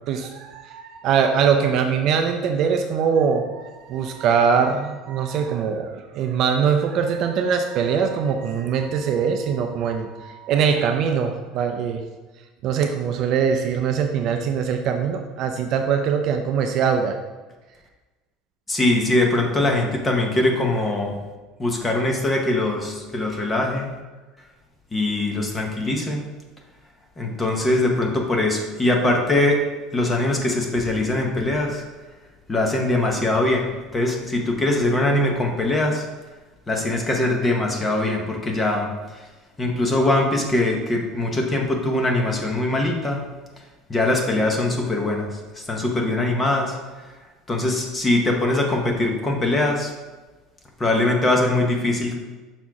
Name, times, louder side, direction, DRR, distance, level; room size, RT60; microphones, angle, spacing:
voice 1, 0.1-12.0 12.6-17.2, right 6 dB, 40° right, 5 dB, 0.4 m, -22 dB
voice 2, 18.7-21.1 21.6-23.9 24.9-26.2 27.2-29.6 29.9-31.8 32.5-36.1 36.7-38.9 39.6-43.2 43.9-47.1 47.5-49.9 50.8-52.2, left 2 dB, 10° left, 1 dB, 0.8 m, -22 dB
5.9 x 4.2 x 4.7 m, 1.2 s
cardioid pair, 175°, 0 cm